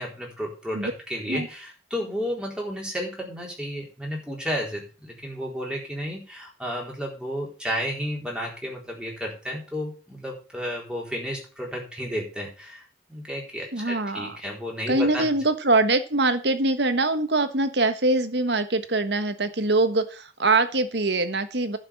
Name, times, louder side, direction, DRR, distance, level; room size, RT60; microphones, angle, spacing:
voice 1, 0.0-12.8 13.1-15.4, equal, 5° right, -2 dB, 4.1 m, -32 dB
voice 2, 13.7-14.4 14.9-21.8, right 2 dB, 70° right, 10 dB, 1.4 m, -23 dB
11.5 x 6.3 x 7.1 m, 0.36 s
head